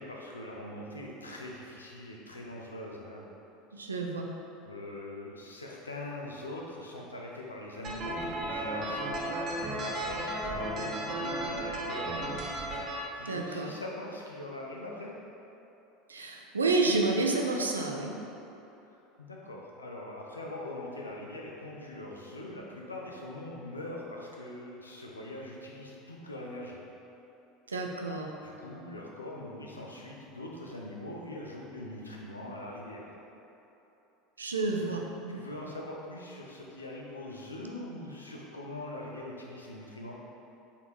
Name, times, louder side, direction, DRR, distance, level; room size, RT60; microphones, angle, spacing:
voice 1, 0.0-3.2 4.6-12.8 13.2-15.1 19.2-26.8 28.4-33.1 34.8-34.9 35.3-40.2, left 1 dB, 85° left, -2 dB, 0.5 m, -42 dB
voice 2, 3.7-4.3 13.3-13.7 16.1-18.1 27.7-28.3 34.4-35.4, right 3 dB, 80° right, 1 dB, 0.4 m, -30 dB
sound 1, 7.8-13.0, right 1 dB, 40° right, 0.8 m, -34 dB
4.1 x 3.7 x 3.1 m, 2.9 s
figure-of-eight pair, 75°, 0 cm